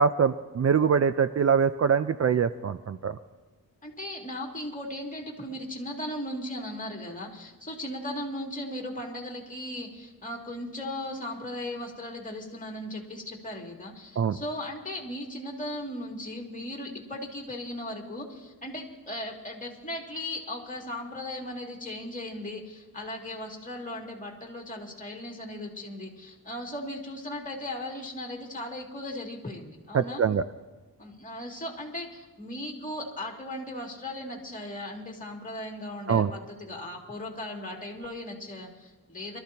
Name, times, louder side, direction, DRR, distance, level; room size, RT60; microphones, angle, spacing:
voice 1, 0.0-3.2 14.2-14.4 29.9-30.4 36.1-36.3, right 6 dB, 45° right, 12 dB, 0.5 m, -23 dB
voice 2, 3.8-30.2 31.0-39.4, left 1 dB, 20° left, 0 dB, 2.5 m, -37 dB
23.5 x 13.5 x 2.9 m, 1.3 s
wide cardioid pair, 110°, 36 cm